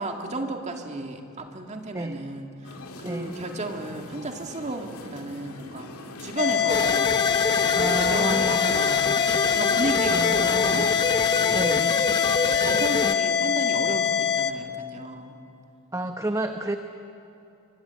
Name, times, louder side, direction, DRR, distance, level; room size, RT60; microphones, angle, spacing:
voice 1, 0.0-5.9 6.2-7.2 7.8-9.2 9.5-10.9 11.4-11.9 12.4-15.4, right 2 dB, 30° right, 4 dB, 2.2 m, -33 dB
sound 1, 2.6-12.0, left 2 dB, 75° left, 2.2 m, -42 dB
voice 2, 3.0-3.4 7.8-8.8 10.1-10.9 11.5-11.9 15.9-16.8, right 1 dB, 15° right, 6 dB, 0.8 m, -30 dB
sound 2, 6.4-14.5, left 8 dB, 50° left, 1.0 m, -24 dB
sound 3, 6.7-13.2, left 3 dB, 20° left, 0.8 m, -27 dB
26.5 x 24.5 x 8.3 m, 2.8 s
head